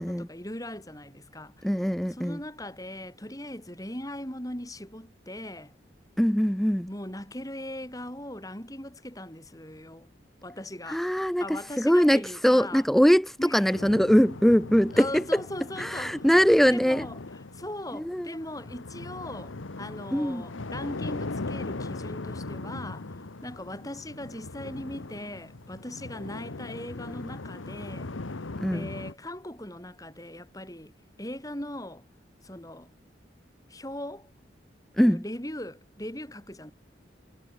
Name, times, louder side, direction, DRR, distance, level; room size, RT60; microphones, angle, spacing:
voice 1, 0.0-1.7 2.2-5.7 6.9-10.1 10.4-11.0 11.4-12.8 13.4-13.8 14.9-16.3 16.7-17.2 17.5-23.1 23.4-28.1 28.7-30.9 31.2-32.0 32.4-32.9 33.7-34.3 35.0-36.7, left 1 dB, 20° left, 5.5 m, -39 dB
voice 2, 1.6-2.4 6.2-6.9 10.9-15.4 15.8-17.1 17.9-18.3 20.1-20.4 28.6-28.9 35.0-35.2, equal, ahead, 0.4 m, -22 dB
sound 1, 13.7-29.1, left 2 dB, 90° left, 1.2 m, -39 dB
head